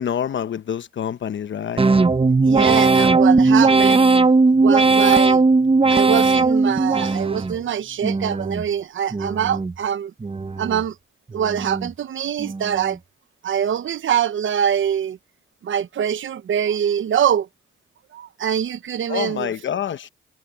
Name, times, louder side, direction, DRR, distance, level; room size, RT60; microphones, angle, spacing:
voice 1, 0.0-1.8 19.1-20.1, left 9 dB, 65° left, 0.9 m, -27 dB
sound 1, 1.8-7.6 8.0-8.7 9.1-9.8 10.2-10.9 11.3-11.9 12.4-12.9, right 3 dB, 25° right, 1.0 m, -18 dB
voice 2, 2.4-4.0 4.6-5.4 5.9-10.1 10.6-10.9 11.3-13.0 13.4-15.2 15.6-17.5 18.1-19.5, right 9 dB, 75° right, 1.0 m, -23 dB
cardioid pair, 65°, 21 cm